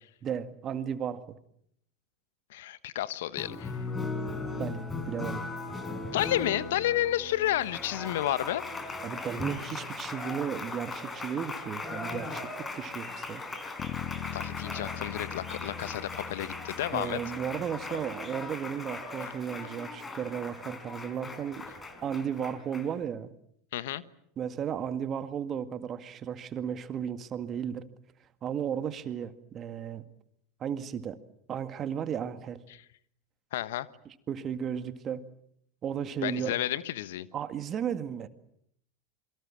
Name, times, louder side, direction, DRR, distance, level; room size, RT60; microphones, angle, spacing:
voice 1, 0.2-1.4 4.6-5.5 9.0-13.4 16.9-21.7 22.0-23.3 24.4-27.9 28.4-30.0 30.6-31.2 31.5-32.6 34.1-35.2 35.8-36.5 37.3-38.3, right 8 dB, 35° right, 2.0 m, -34 dB
voice 2, 2.5-3.8 6.1-8.6 14.3-17.2 19.2-19.3 23.7-24.0 33.5-33.9 36.2-37.3, left 13 dB, 70° left, 1.2 m, -31 dB
Applause, 3.4-23.0, left 3 dB, 20° left, 4.3 m, -38 dB
Bass guitar, 13.8-18.2, left 10 dB, 40° left, 1.6 m, -41 dB
27.5 x 23.0 x 7.5 m
hypercardioid pair, 85°, 0 cm